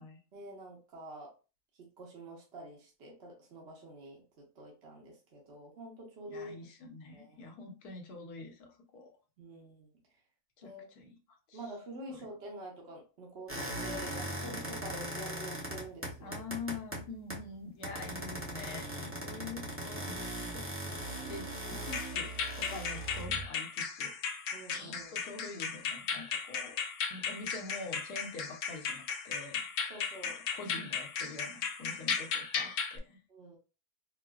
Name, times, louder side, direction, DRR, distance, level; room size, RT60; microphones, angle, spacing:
voice 1, 0.3-1.3 1.7-6.7 7.1-7.4 9.4-9.9 10.6-10.8 11.5-16.4 22.6-22.9 24.5-25.3 29.9-30.4 33.3-33.6, right 1 dB, 50° right, -2 dB, 1.1 m, -47 dB
voice 2, 6.3-9.1 10.6-11.2 11.5-11.6 16.2-20.6 21.3-24.1 24.8-26.8 27.1-29.6 30.2-33.2, left 3 dB, 80° left, 3 dB, 1.3 m, -46 dB
sound 1, 13.5-17.5 17.8-23.5, right 1 dB, 15° right, 0.5 m, -39 dB
sound 2, 21.9-33.0, left 6 dB, 65° left, 0.8 m, -36 dB
4.6 x 2.0 x 2.3 m, 0.33 s
omnidirectional pair, 1.6 m